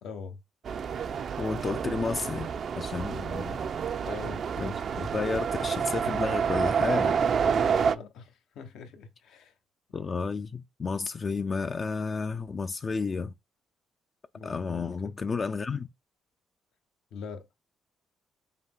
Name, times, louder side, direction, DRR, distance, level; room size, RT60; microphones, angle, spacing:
voice 1, 0.0-0.4 4.0-5.1 7.4-9.5 14.3-15.1 17.1-17.5, left 5 dB, 80° left, 0.9 m, -43 dB
sound 1, 0.7-8.0, right 7 dB, 55° right, 0.4 m, -28 dB
voice 2, 1.4-2.5 2.8-3.6 4.6-7.2 9.9-13.3 14.4-15.9, left 4 dB, 40° left, 0.4 m, -32 dB
5.6 x 2.1 x 3.5 m
cardioid pair, 90°, 0 cm